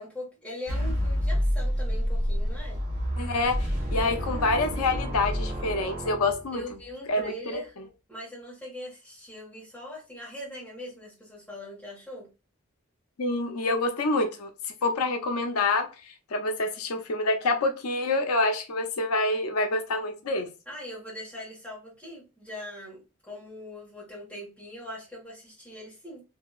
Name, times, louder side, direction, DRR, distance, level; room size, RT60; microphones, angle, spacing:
voice 1, 0.0-2.8 4.0-4.4 6.5-7.8 8.1-12.3 20.6-26.2, left 1 dB, 5° left, 1.4 m, -41 dB
sound 1, 0.7-6.8, equal, 35° right, 0.9 m, -29 dB
voice 2, 3.2-3.6 3.9-6.6 7.1-7.6 13.2-14.5 14.8-15.9 16.3-20.5, left 2 dB, 90° left, 0.5 m, -26 dB
2.8 x 2.7 x 2.3 m
head